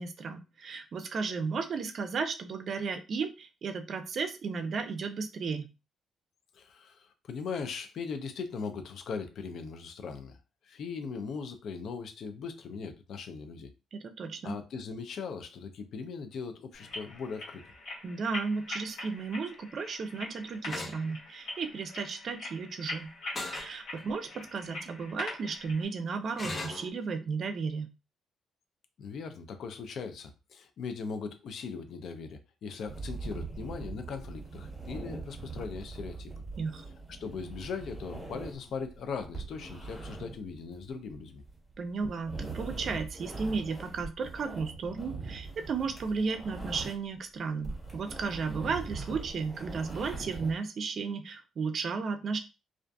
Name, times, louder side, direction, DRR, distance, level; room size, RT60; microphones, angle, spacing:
voice 1, 0.0-5.7 13.9-14.5 18.0-23.1 23.5-27.9 36.6-36.9 41.8-52.4, right 5 dB, 55° right, 0.4 m, -34 dB
voice 2, 6.5-10.4 10.6-13.7 14.4-17.6 29.0-36.4 37.2-41.4, left 5 dB, 65° left, 0.4 m, -39 dB
sound 1, 16.7-25.9, left 2 dB, 90° left, 1.3 m, -43 dB
sound 2, 20.7-21.0 23.4-23.7 24.3-24.4 26.4-26.9, left 2 dB, 30° left, 0.7 m, -37 dB
sound 3, 32.9-47.2 47.5-50.5, right 3 dB, ahead, 1.2 m, -42 dB
2.5 x 2.4 x 2.3 m
cardioid pair, 90°, 0 cm